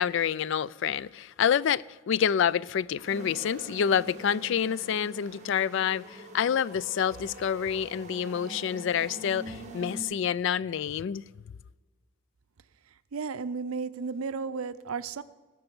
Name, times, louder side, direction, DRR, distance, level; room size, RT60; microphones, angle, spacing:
voice 1, 0.0-11.2, left 8 dB, 60° left, 0.3 m, -28 dB
sound 1, 3.0-10.0, right 1 dB, 35° right, 1.8 m, -44 dB
voice 2, 13.1-15.2, right 5 dB, 85° right, 0.5 m, -33 dB
19.0 x 6.8 x 7.0 m
head